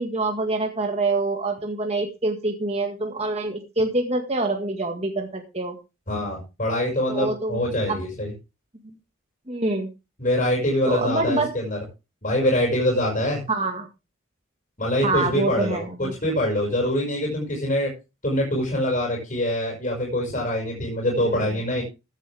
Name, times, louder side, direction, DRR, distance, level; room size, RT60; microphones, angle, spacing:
voice 1, 0.0-5.8 7.1-7.6 7.9-8.0 8.8-8.9 9.5-9.9 10.9-11.6 13.5-13.9 15.0-16.1 21.2-21.5, right 2 dB, 30° right, 3 dB, 1.8 m, -26 dB
voice 2, 6.1-8.3 10.2-11.8 12.2-13.4 14.8-17.9 18.2-21.8, left 1 dB, 35° left, -2 dB, 6.1 m, -24 dB
15.0 x 10.0 x 3.5 m, 0.28 s
head